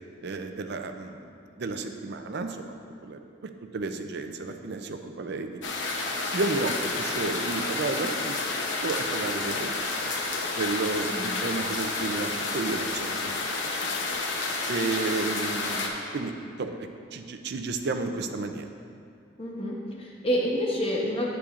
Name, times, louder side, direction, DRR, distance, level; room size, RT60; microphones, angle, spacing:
voice 1, 0.2-1.3 1.6-2.7 3.0-5.6 6.3-8.4 8.8-9.8 10.6-13.5 13.8-13.9 14.7-16.3 16.6-16.7 17.1-18.7, right 3 dB, 60° right, 7 dB, 0.5 m, -32 dB
sound 1, 5.6-15.9, left 3 dB, 70° left, 0.8 m, -30 dB
voice 2, 19.4-21.3, equal, 30° left, -3 dB, 0.9 m, -28 dB
9.9 x 8.4 x 2.5 m, 2.4 s
head